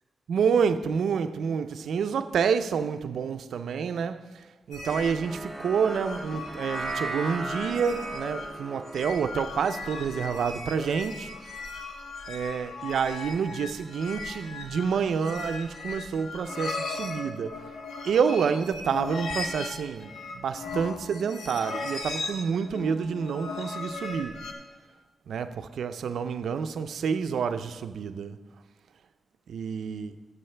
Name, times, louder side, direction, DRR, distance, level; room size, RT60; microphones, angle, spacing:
voice 1, 0.3-4.2 4.7-11.3 12.3-17.6 18.0-24.4 25.3-28.4 29.5-30.1, right 6 dB, 85° right, 0.4 m, -28 dB
sound 1, 4.7-24.5, left 3 dB, 85° left, 1.1 m, -38 dB
sound 2, 4.9-11.3, right 2 dB, 15° right, 0.5 m, -38 dB
13.5 x 7.5 x 3.3 m
wide cardioid pair, 175°, 0 cm